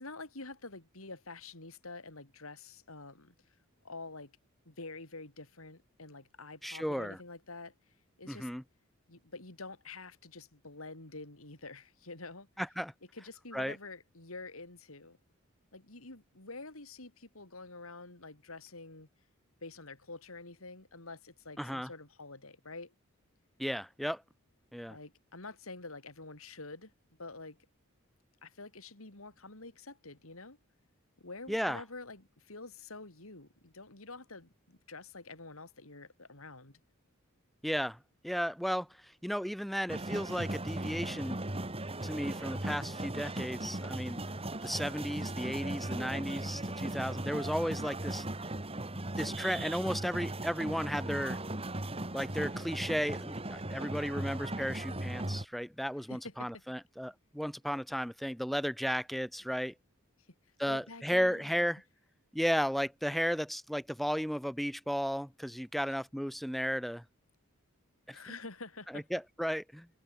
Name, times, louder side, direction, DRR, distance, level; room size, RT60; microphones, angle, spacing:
voice 1, 0.0-3.3 3.8-4.3 4.7-7.7 8.2-8.5 9.1-12.5 13.1-15.2 15.7-19.1 19.6-22.9 24.9-27.6 28.4-30.6 31.2-36.8 56.1-56.6 60.7-61.6 68.1-69.0, left 3 dB, 75° left, 3.9 m, -47 dB
voice 2, 6.6-7.2 8.3-8.6 12.6-12.9 13.5-13.8 21.6-21.9 23.6-24.2 24.7-25.0 31.5-31.8 37.6-38.0 38.2-41.4 42.0-44.2 44.6-48.3 49.2-51.4 52.1-59.7 60.6-61.8 62.3-67.0 68.1-68.2 68.9-69.9, equal, ahead, 1.8 m, -34 dB
sound 1, 39.9-55.4, right 1 dB, 25° right, 3.0 m, -38 dB
head